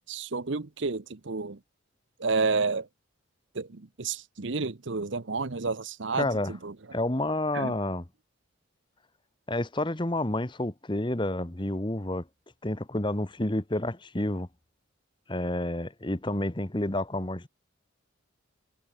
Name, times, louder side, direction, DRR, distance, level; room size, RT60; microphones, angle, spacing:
voice 1, 0.0-1.6 2.2-2.9 3.5-6.7 7.5-7.8, right 4 dB, 60° right, 0.9 m, -30 dB
voice 2, 6.1-6.5 6.9-8.0 9.5-12.2 12.6-14.5 15.3-17.5, left 1 dB, 20° left, 1.2 m, -29 dB
head